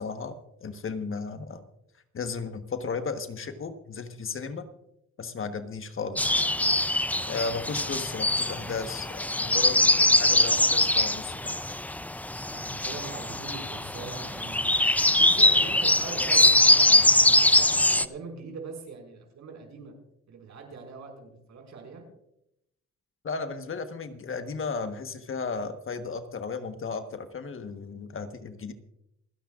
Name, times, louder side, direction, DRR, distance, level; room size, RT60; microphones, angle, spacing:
voice 1, 0.0-1.6 2.1-4.7 5.2-6.5 7.3-11.5 23.2-28.7, left 4 dB, 45° left, 8 dB, 1.3 m, -35 dB
sound 1, 6.2-18.1, left 1 dB, 5° left, 0.4 m, -23 dB
voice 2, 12.5-14.7 15.2-19.9 20.3-22.1, right 4 dB, 65° right, 2 dB, 5.6 m, -42 dB
28.0 x 10.0 x 2.5 m, 0.80 s
cardioid pair, 90°, 30 cm